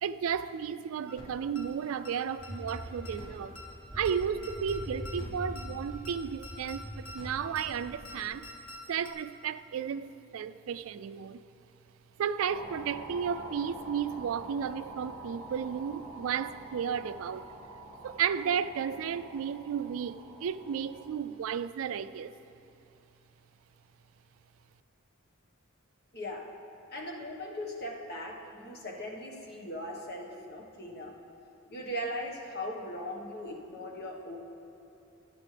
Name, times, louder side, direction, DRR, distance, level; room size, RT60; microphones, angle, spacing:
voice 1, 0.0-3.5 3.9-8.5 8.9-11.4 12.2-17.5 18.0-22.3, right 7 dB, 75° right, 13 dB, 0.3 m, -33 dB
sound 1, 1.1-1.3 1.5-1.6 2.0-2.1 2.4-2.8 3.0-3.3 3.5-3.6 4.0-4.1 4.4-4.8 5.0-5.3 5.5-5.6 6.0-6.1 6.4-6.8 7.0-7.3 7.5-7.6 8.0-8.1 8.4-8.8 9.0-9.1, left 1 dB, 85° left, 1.7 m, -45 dB
sound 2, 2.3-8.6, equal, 5° right, 0.7 m, -43 dB
sound 3, 12.5-21.2, right 2 dB, 15° left, 1.7 m, -46 dB
voice 2, 26.1-26.5 26.9-31.1 31.7-34.4, left 1 dB, 50° left, 0 dB, 1.4 m, -39 dB
21.0 x 8.3 x 3.3 m, 2.9 s
head